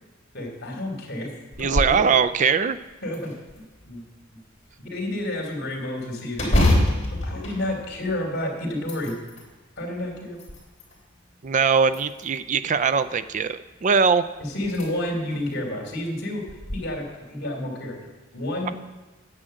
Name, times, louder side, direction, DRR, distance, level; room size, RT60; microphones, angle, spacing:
voice 1, 0.3-1.3 1.6-2.1 3.0-3.3 3.8-4.0 4.8-6.7 7.2-9.1 9.8-10.4 14.4-16.4 16.7-18.0 18.3-18.7, left 1 dB, 55° left, 1 dB, 3.0 m, -30 dB
sound 1, 1.5-2.0 2.5-2.6 3.1-3.9 6.3-8.3 8.7-9.5 10.1-11.0 11.9-12.5 14.0-14.1 14.6-14.9 15.3-15.4 16.5-16.8, left 1 dB, 35° left, 3.2 m, -25 dB
voice 2, 1.6-2.8 11.4-14.2, right 6 dB, 40° right, 14 dB, 0.4 m, -21 dB
9.9 x 7.4 x 7.7 m, 1.1 s
head